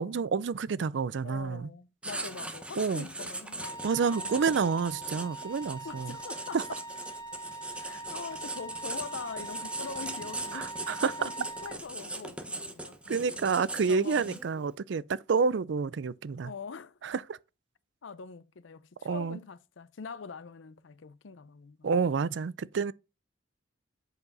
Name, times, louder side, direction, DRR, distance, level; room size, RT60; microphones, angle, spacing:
voice 1, 0.0-1.7 2.8-3.0 3.8-6.1 6.5-6.6 10.5-11.1 13.1-16.5 17.0-17.4 19.0-19.4 21.8-22.9, right 5 dB, 70° right, 0.4 m, -29 dB
voice 2, 1.2-5.3 5.8-6.8 7.7-13.4 13.6-14.4 16.4-17.0 18.0-21.9, left 5 dB, 85° left, 0.6 m, -44 dB
Writing, 2.0-14.6, right 2 dB, 5° right, 0.9 m, -40 dB
Wind instrument woodwind instrument, 3.6-11.8, right 3 dB, 20° left, 0.7 m, -42 dB
7.9 x 4.7 x 5.3 m
head